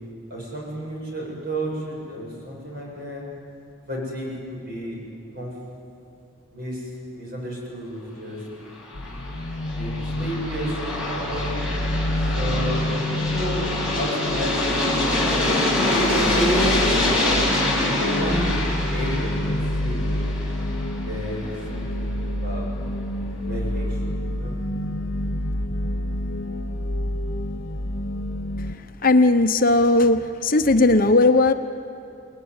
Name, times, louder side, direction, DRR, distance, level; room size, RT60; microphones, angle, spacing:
voice 1, 0.3-3.3 3.9-5.0 5.3-5.5 6.5-8.4 9.8-11.6 12.3-13.7 14.0-15.0 16.2-17.5 17.8-18.5 18.9-20.3 21.0-22.7 23.4-24.6, equal, 50° right, -2 dB, 7.7 m, -31 dB
Aircraft, 8.8-21.6, left 1 dB, 5° right, 5.7 m, -25 dB
sound 1, 8.9-28.7, left 1 dB, 65° left, 1.5 m, -28 dB
voice 2, 29.0-31.5, left 2 dB, 45° left, 7 dB, 0.9 m, -17 dB
29.0 x 20.0 x 9.7 m, 2.7 s
head